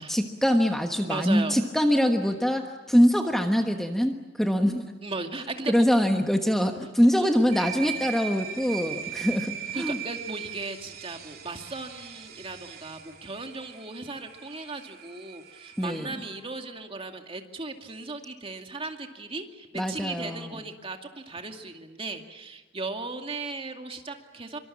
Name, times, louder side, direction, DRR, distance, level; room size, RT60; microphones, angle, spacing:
voice 1, 0.0-4.8 5.7-10.0 15.8-16.1 19.7-20.6, equal, ahead, 4 dB, 1.3 m, -24 dB
voice 2, 1.0-1.6 5.0-5.9 7.2-7.3 9.7-24.6, right 3 dB, 30° right, 4 dB, 2.3 m, -37 dB
sound 1, 7.5-16.0, right 10 dB, 55° right, 3.1 m, -39 dB
25.5 x 24.5 x 8.6 m, 1.3 s
head